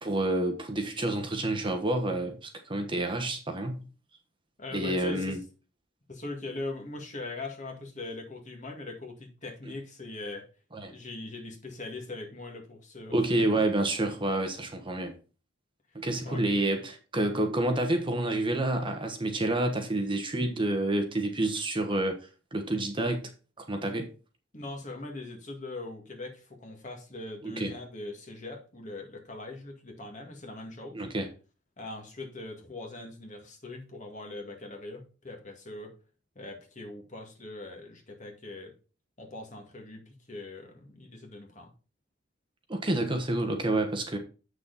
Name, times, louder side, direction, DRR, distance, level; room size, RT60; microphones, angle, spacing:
voice 1, 0.0-3.9 4.7-5.4 10.7-10.9 13.1-15.1 15.9-22.2 22.5-23.3 23.6-24.1 27.4-27.7 30.9-31.3 42.7-44.2, right 1 dB, 25° right, 1.2 m, -28 dB
voice 2, 4.6-5.4 6.1-10.5 10.9-13.6 16.2-16.4 24.5-31.0 31.8-35.9 36.4-38.7 39.2-41.7, left 2 dB, 35° left, 2.0 m, -41 dB
7.8 x 6.5 x 4.0 m
head